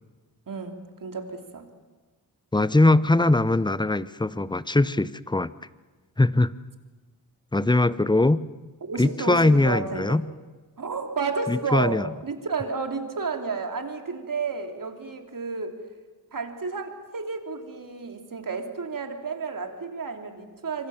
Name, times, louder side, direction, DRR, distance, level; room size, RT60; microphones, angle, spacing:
voice 1, 0.5-1.7 8.8-10.2 10.8-15.8 16.3-20.9, right 4 dB, 55° right, 4 dB, 3.4 m, -31 dB
voice 2, 2.5-5.5 6.2-6.5 7.5-8.4 9.0-10.2 11.5-12.1, left 2 dB, 10° left, 16 dB, 0.8 m, -21 dB
26.5 x 24.5 x 7.3 m, 1.3 s
cardioid pair, 60°, 40 cm